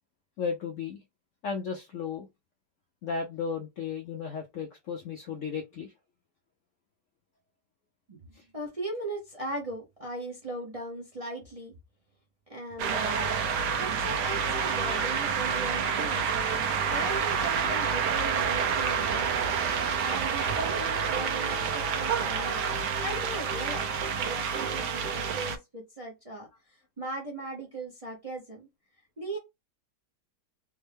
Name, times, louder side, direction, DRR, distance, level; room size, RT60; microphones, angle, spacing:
voice 1, 0.4-1.0 1.4-2.3 3.0-5.9 8.3-8.4, left 6 dB, 65° left, 0.7 m, -34 dB
voice 2, 8.5-11.7 12.5-13.3 13.7-19.3 20.0-22.6 23.0-23.9 24.2-28.7 29.2-29.4, right 2 dB, 30° right, 0.7 m, -38 dB
sound 1, 12.8-25.6, right 6 dB, 75° right, 1.2 m, -28 dB
3.5 x 2.2 x 3.3 m
omnidirectional pair, 1.8 m